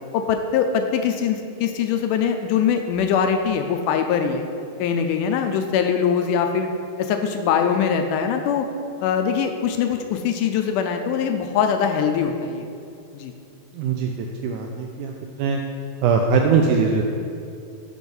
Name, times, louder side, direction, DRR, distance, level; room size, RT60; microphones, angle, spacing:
voice 1, 0.1-4.4 4.8-6.7 7.0-8.7 9.0-12.7 13.1-13.3, left 7 dB, 80° left, 5 dB, 1.9 m, -22 dB
voice 2, 13.7-15.6 16.0-17.0, right 5 dB, 85° right, 2 dB, 1.8 m, -21 dB
6.3 x 5.9 x 5.3 m, 2.5 s
omnidirectional pair, 4.0 m